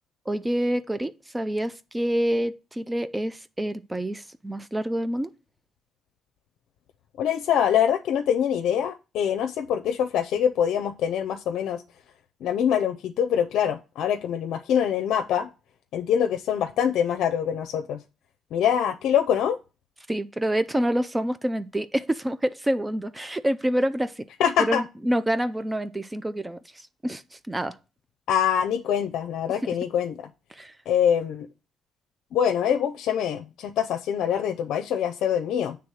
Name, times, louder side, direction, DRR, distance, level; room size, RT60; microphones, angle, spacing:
voice 1, 0.3-5.3 20.1-24.3 24.6-27.8 29.6-29.7 30.5-30.8, right 1 dB, 15° right, 0.5 m, -27 dB
voice 2, 7.2-11.8 12.4-15.5 15.9-18.0 18.5-19.6 24.4-24.8 28.3-30.3 30.9-31.5 32.3-35.8, left 9 dB, 85° left, 0.6 m, -24 dB
8.1 x 3.4 x 6.3 m
cardioid pair, 90°, 0 cm